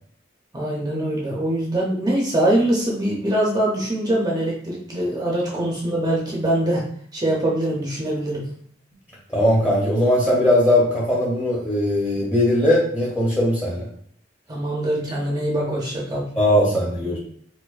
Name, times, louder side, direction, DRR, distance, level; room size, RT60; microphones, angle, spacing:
voice 1, 0.5-6.9 7.1-8.5 14.5-16.3, right 1 dB, 20° right, -3 dB, 0.6 m, -23 dB
voice 2, 9.3-13.8 16.4-17.2, left 1 dB, 15° left, -7 dB, 0.8 m, -19 dB
4.4 x 2.1 x 2.4 m, 0.63 s
head